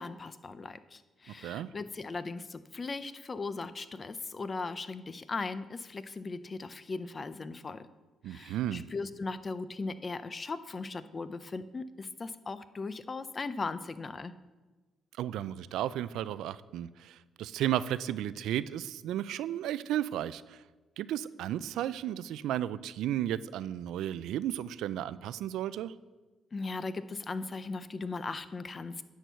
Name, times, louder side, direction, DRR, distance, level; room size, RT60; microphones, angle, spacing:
voice 1, 0.0-7.9 8.3-14.3 26.5-29.0, left 3 dB, 30° left, 14 dB, 0.5 m, -38 dB
voice 2, 8.2-8.9 15.2-20.6 21.0-25.9, right 12 dB, 85° right, 16 dB, 0.3 m, -34 dB
10.5 x 4.6 x 6.7 m, 1.2 s
cardioid pair, 90°, 0 cm